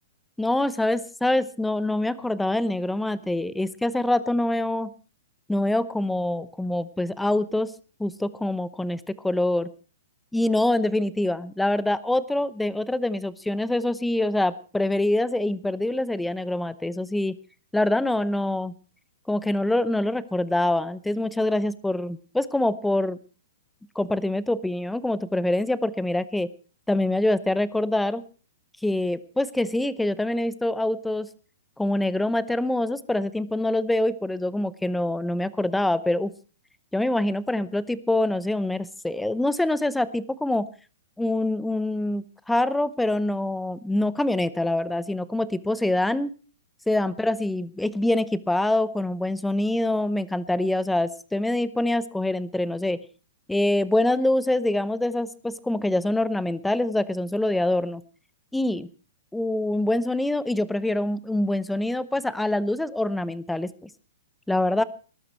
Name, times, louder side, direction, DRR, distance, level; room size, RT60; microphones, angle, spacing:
voice 1, 0.4-4.9 5.5-7.7 8.0-9.7 10.3-17.3 17.7-18.7 19.3-23.2 23.9-26.5 26.9-28.2 28.8-31.3 31.8-36.3 36.9-40.7 41.2-46.3 46.9-53.0 53.5-58.0 58.5-58.9 59.3-63.9 64.5-64.8, left 1 dB, 5° left, 17 dB, 0.7 m, -25 dB
19.5 x 11.5 x 4.5 m, 0.37 s
hypercardioid pair, 150°, 0 cm